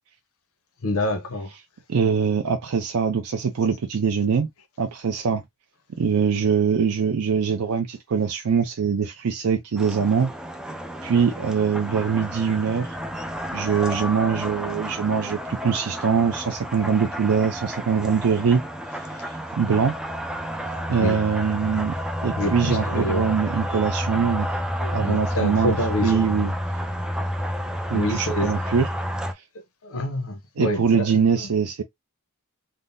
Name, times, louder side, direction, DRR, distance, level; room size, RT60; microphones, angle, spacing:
voice 1, 0.8-1.5 21.0-21.2 22.4-23.3 24.8-26.3 27.9-28.5 29.8-31.1, left 1 dB, 70° left, 0.7 m, -26 dB
voice 2, 1.9-4.5 4.8-5.4 6.0-10.3 11.0-12.9 13.5-18.6 19.3-20.0 20.9-22.0 22.2-24.5 24.9-26.5 27.9-28.9 30.6-31.8, right 6 dB, 80° right, 0.5 m, -23 dB
sound 1, 9.8-29.3, equal, 5° right, 0.4 m, -30 dB
3.6 x 2.0 x 2.6 m
head